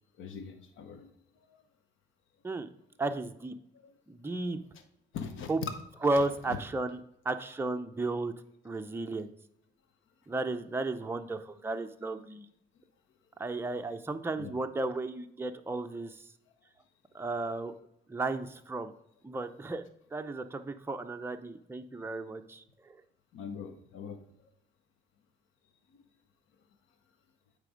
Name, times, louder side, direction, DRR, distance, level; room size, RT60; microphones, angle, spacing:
voice 1, 0.1-1.1 1.5-1.6 3.7-4.0 4.7-4.8 5.1-5.7 6.2-6.3 14.4-14.6 23.3-24.5 25.9-26.0, left 7 dB, 80° left, 7 dB, 0.9 m, -42 dB
voice 2, 3.0-3.5 4.1-4.6 5.5-5.6 6.0-7.0 7.2-8.3 8.6-9.3 10.3-12.5 13.4-16.2 17.1-17.7 18.1-18.9 19.2-19.8 20.1-23.0, right 2 dB, 10° right, 6 dB, 0.5 m, -34 dB
8.8 x 3.4 x 5.0 m, 0.77 s
cardioid pair, 90°, 20 cm